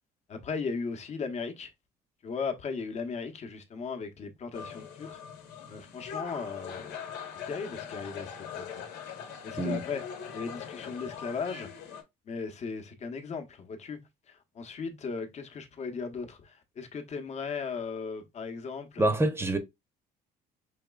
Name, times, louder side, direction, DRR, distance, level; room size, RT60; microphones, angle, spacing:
voice 1, 0.3-1.7 2.2-5.2 5.7-7.0 7.5-8.8 9.4-10.0 10.3-11.7 12.2-19.1, left 5 dB, 40° left, 0.9 m, -37 dB
sound 1, 4.5-12.0, left 7 dB, 90° left, 1.1 m, -42 dB
voice 2, 19.0-19.6, right 2 dB, 15° right, 0.8 m, -26 dB
5.1 x 3.0 x 2.3 m
cardioid pair, 110°, 17 cm